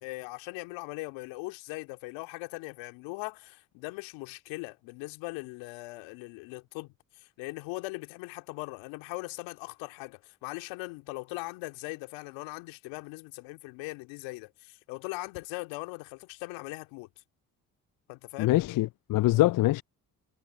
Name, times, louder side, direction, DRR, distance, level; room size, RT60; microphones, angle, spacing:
voice 1, 0.0-17.1 18.1-18.6, left 23 dB, 75° left, 2.5 m, -40 dB
voice 2, 18.4-19.8, left 17 dB, 50° left, 0.5 m, -24 dB
hypercardioid pair, 45°, 46 cm